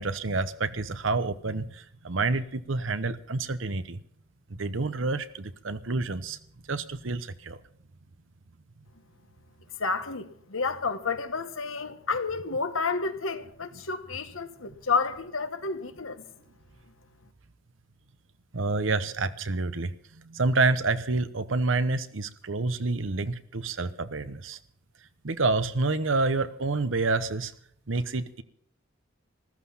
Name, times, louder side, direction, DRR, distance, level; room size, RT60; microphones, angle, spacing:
voice 1, 0.0-4.0 4.5-6.4 6.7-7.6 18.5-24.6 25.2-27.5 27.9-28.4, right 3 dB, 70° right, 1.0 m, -28 dB
voice 2, 9.8-16.2, left 4 dB, 85° left, 1.4 m, -30 dB
14.5 x 14.0 x 5.7 m
head